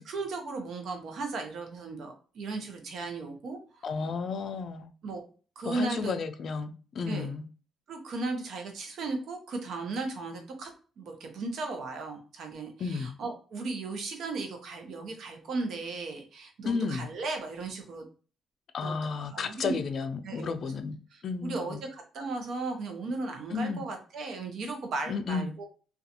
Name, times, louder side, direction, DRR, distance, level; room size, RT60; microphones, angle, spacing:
voice 1, 0.0-4.1 5.0-5.2 5.6-6.1 7.0-7.3 7.9-10.7 11.0-18.1 18.8-19.0 19.3-19.8 20.2-20.5 21.1-25.6, right 3 dB, 70° right, 0.7 m, -36 dB
voice 2, 3.8-4.9 5.6-7.4 12.8-13.2 16.6-17.1 18.7-21.0 21.2-21.8 23.5-23.8 25.1-25.5, left 5 dB, 55° left, 0.3 m, -32 dB
2.5 x 2.3 x 2.7 m
cardioid pair, 90°, 0 cm